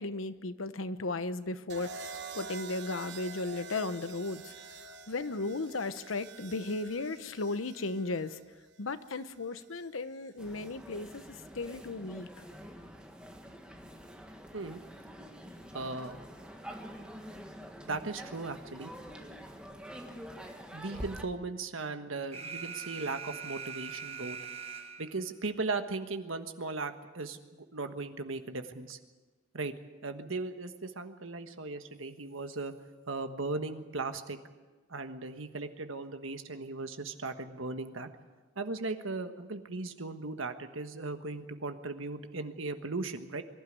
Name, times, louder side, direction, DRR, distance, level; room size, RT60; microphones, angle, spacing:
voice 1, 0.0-4.5 5.1-8.4 8.8-11.2 11.5-12.3, left 3 dB, 90° left, 12 dB, 0.9 m, -35 dB
sound 1, 1.7-9.8 11.0-11.4, right 4 dB, 60° right, 1.1 m, -47 dB
sound 2, 10.4-21.3, equal, 5° right, 1.5 m, -46 dB
voice 2, 15.7-16.2 17.8-18.9 20.7-24.4 25.0-29.0 29.5-29.7 30.0-32.7 33.1-34.4 34.9-38.1 38.6-43.4, right 3 dB, 85° right, 8 dB, 1.4 m, -37 dB
Alarm, 22.3-25.3, right 6 dB, 30° right, 1.3 m, -42 dB
23.5 x 12.0 x 9.6 m, 1.3 s
head